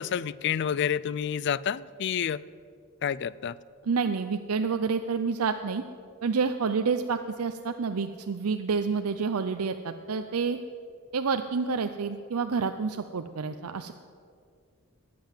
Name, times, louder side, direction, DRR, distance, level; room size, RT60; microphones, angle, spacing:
voice 1, 0.0-2.4 3.0-3.6, left 8 dB, 50° left, 19 dB, 0.4 m, -29 dB
voice 2, 3.8-5.8 6.2-10.6 11.1-13.9, right 5 dB, 90° right, 8 dB, 0.6 m, -28 dB
20.5 x 7.8 x 7.5 m, 2.3 s
head